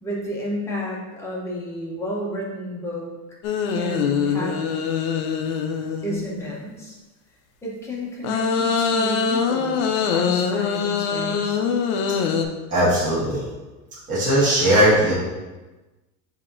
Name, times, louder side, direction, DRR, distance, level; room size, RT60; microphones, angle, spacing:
voice 1, 0.0-3.1 3.7-4.7 6.0-7.0 7.6-11.6, equal, 5° left, -5 dB, 0.8 m, -31 dB
sound 1, 3.4-6.5 8.2-12.5, left 6 dB, 70° left, 0.6 m, -23 dB
voice 2, 12.7-13.4 14.1-15.1, right 1 dB, 15° right, -10 dB, 1.5 m, -18 dB
6.5 x 2.8 x 2.5 m, 1.1 s
supercardioid pair, 150°, 44 cm